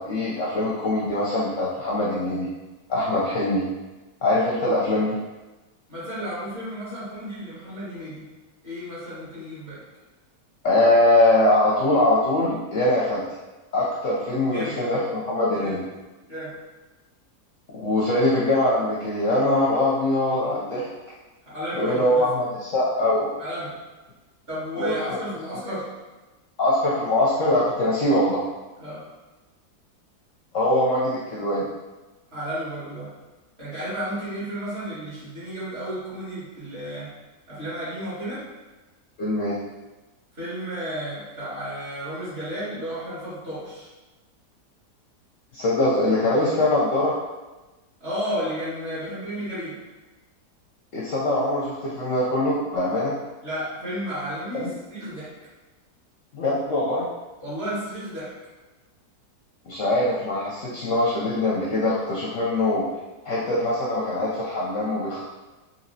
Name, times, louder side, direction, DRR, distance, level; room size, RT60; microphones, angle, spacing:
voice 1, 0.0-2.5 2.9-3.7 4.2-5.2 10.6-13.2 13.7-15.8 17.8-20.9 21.7-23.3 24.7-25.2 25.6-25.7 26.6-28.4 30.5-31.7 39.2-39.6 45.5-47.2 50.9-53.2 54.5-54.7 56.3-57.1 59.6-62.9 63.2-65.2, left 1 dB, 65° left, -6 dB, 0.8 m, -22 dB
voice 2, 5.9-8.3 8.6-9.8 14.5-14.8 15.5-15.8 16.3-16.5 21.5-22.3 23.4-23.7 24.5-25.9 28.8-29.0 32.3-33.1 33.6-37.1 37.5-38.4 40.4-43.9 48.0-49.8 53.4-55.3 57.4-58.3, equal, 40° right, -10 dB, 1.8 m, -32 dB
4.1 x 2.8 x 2.6 m, 1.2 s
omnidirectional pair, 1.8 m